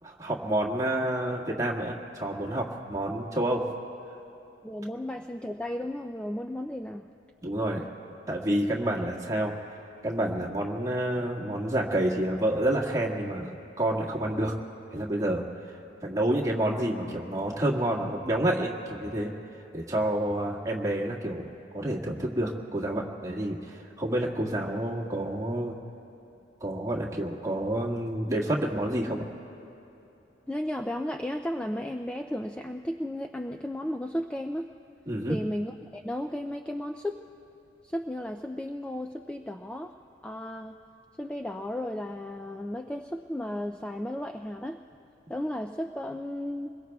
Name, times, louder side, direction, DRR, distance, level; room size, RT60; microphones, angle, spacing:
voice 1, 0.0-3.6 7.4-7.8 8.3-9.5 10.0-14.5 14.9-15.4 16.0-19.3 19.7-21.5 21.7-25.8 26.6-29.2 35.1-35.4, right 1 dB, 20° right, -4 dB, 1.8 m, -29 dB
voice 2, 4.6-7.1 30.5-34.7 35.3-37.2 37.8-40.0 40.2-40.8 41.2-44.8 45.3-46.7, left 1 dB, 5° left, 4 dB, 0.3 m, -34 dB
27.0 x 22.0 x 2.3 m, 3.0 s
head